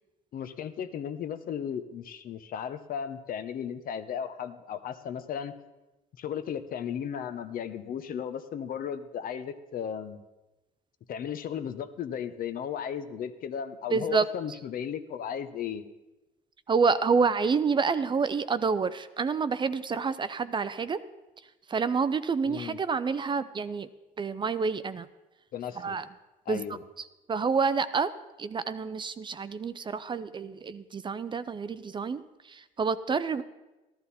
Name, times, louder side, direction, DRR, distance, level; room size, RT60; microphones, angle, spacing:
voice 1, 0.3-5.5 6.2-10.2 11.1-15.8 22.4-22.8 25.5-26.0 26.5-26.8, left 8 dB, 55° left, 11 dB, 0.8 m, -35 dB
voice 2, 13.9-14.3 16.7-21.0 21.7-23.9 24.2-25.1 25.8-26.0 26.5-26.7 27.0-28.1 28.4-33.4, right 5 dB, 30° right, 13 dB, 0.5 m, -28 dB
13.5 x 12.0 x 4.2 m, 1.1 s
cardioid pair, 110°, 17 cm